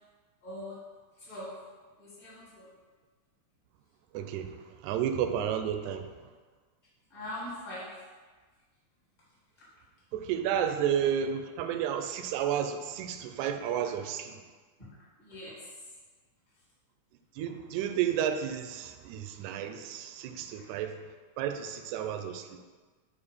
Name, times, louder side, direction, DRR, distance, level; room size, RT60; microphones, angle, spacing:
voice 1, 0.4-0.8 1.3-1.5 2.0-2.7 7.1-7.9 15.2-15.6, left 1 dB, 15° left, -8 dB, 2.0 m, -41 dB
voice 2, 4.1-6.1 10.1-14.4 17.4-21.0 21.4-22.6, right 9 dB, 85° right, 7 dB, 2.0 m, -32 dB
8.2 x 3.5 x 5.4 m, 1.4 s
omnidirectional pair, 3.3 m